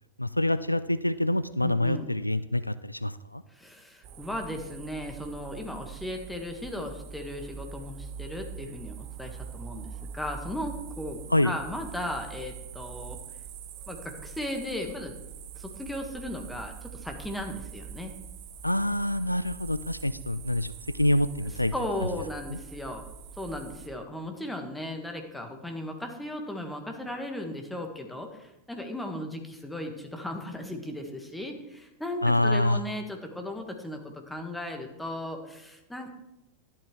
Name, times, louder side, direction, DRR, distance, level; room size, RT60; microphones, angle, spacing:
voice 1, 0.2-3.4 11.3-11.5 18.6-21.7 22.5-22.6 32.2-32.8, left 1 dB, 85° left, 15 dB, 0.3 m, -26 dB
voice 2, 1.6-2.1 3.5-13.2 13.9-15.1 15.5-18.1 21.7-23.0 23.4-36.1, left 1 dB, 5° left, 4 dB, 1.5 m, -36 dB
sound 1, 4.0-23.9, right 7 dB, 45° right, 1.0 m, -43 dB
11.5 x 11.5 x 3.2 m, 0.95 s
figure-of-eight pair, 90°, 0 cm